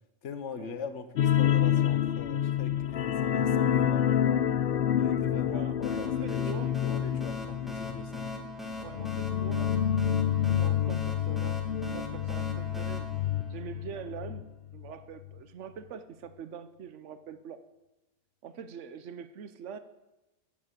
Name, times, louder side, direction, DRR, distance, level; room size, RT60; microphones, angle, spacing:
voice 1, 0.2-4.5 5.0-8.1, left 5 dB, 80° left, 9 dB, 1.3 m, -41 dB
sound 1, 1.2-14.4 14.7-14.9 15.3-15.4, left 10 dB, 60° left, 0.7 m, -28 dB
voice 2, 5.3-6.7 8.8-9.8 10.5-13.1 13.5-17.6 18.4-19.8, right 7 dB, 80° right, 11 dB, 1.1 m, -44 dB
sound 2, 5.8-14.1, left 2 dB, ahead, 1.7 m, -41 dB
12.0 x 8.3 x 8.2 m, 1.0 s
omnidirectional pair, 1.2 m